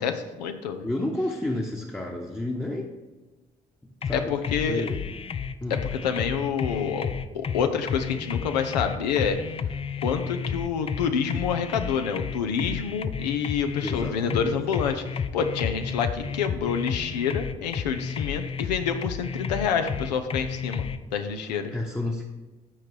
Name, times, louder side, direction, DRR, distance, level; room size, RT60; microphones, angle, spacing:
voice 1, 0.0-0.9 4.1-4.9 5.7-9.4 10.0-20.9 21.1-21.7, left 7 dB, 80° left, 8 dB, 0.6 m, -28 dB
voice 2, 0.8-2.9 4.0-4.3 4.7-5.0 5.6-5.8 13.8-14.5 21.7-22.2, left 1 dB, 10° left, -2 dB, 1.0 m, -30 dB
sound 1, 4.0-21.0, left 6 dB, 25° left, 0.4 m, -31 dB
13.0 x 4.5 x 3.2 m, 1.2 s
figure-of-eight pair, 45°, 21 cm